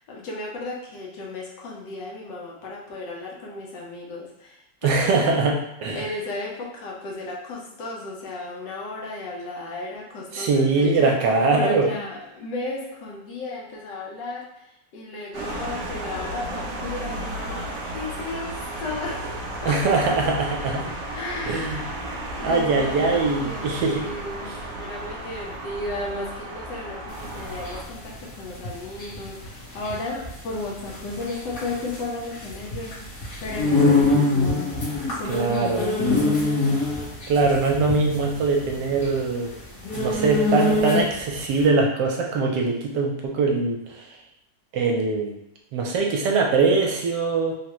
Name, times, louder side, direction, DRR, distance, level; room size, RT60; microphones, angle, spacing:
voice 1, 0.0-5.5 5.9-11.1 11.5-19.8 21.1-21.9 22.4-32.9 33.4-36.5, left 2 dB, 80° left, -3 dB, 1.4 m, -34 dB
voice 2, 4.8-6.0 10.3-11.9 19.7-20.8 21.4-21.8 22.4-24.1 35.3-35.8 37.3-39.5 39.9-44.0 44.7-45.4 45.7-47.5, right 3 dB, 80° right, 0 dB, 1.2 m, -22 dB
sound 1, 15.3-27.8, right 1 dB, 60° right, 0.9 m, -33 dB
sound 2, 27.2-41.4, left 2 dB, 50° left, 1.6 m, -24 dB
3.7 x 2.1 x 2.9 m, 0.82 s
omnidirectional pair, 1.9 m